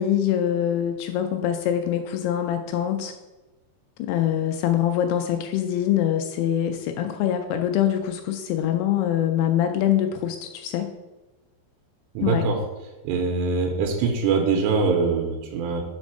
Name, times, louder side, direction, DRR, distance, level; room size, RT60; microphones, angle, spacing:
voice 1, 0.0-3.1 4.0-10.9 12.2-12.5, left 10 dB, 80° left, 6 dB, 2.5 m, -24 dB
voice 2, 12.1-12.6 13.0-15.8, right 4 dB, 90° right, 2 dB, 2.9 m, -23 dB
5.3 x 5.1 x 6.2 m, 1.1 s
omnidirectional pair, 4.9 m